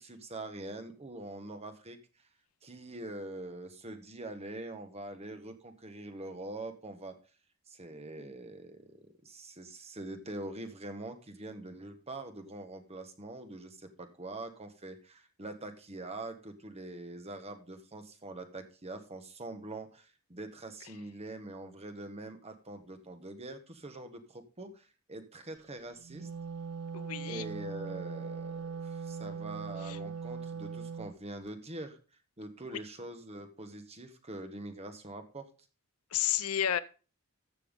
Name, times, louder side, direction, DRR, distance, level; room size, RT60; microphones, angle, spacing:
voice 1, 0.0-2.0 2.6-7.1 7.7-26.3 27.2-32.0 32.4-35.5, right 2 dB, 30° right, 6 dB, 1.4 m, -44 dB
Wind instrument woodwind instrument, 26.0-31.1, right 6 dB, 80° right, 0.5 m, -40 dB
voice 2, 26.9-27.5 29.8-30.0 36.1-36.8, left 10 dB, 75° left, 15 dB, 0.6 m, -31 dB
14.5 x 6.0 x 3.7 m, 0.36 s
head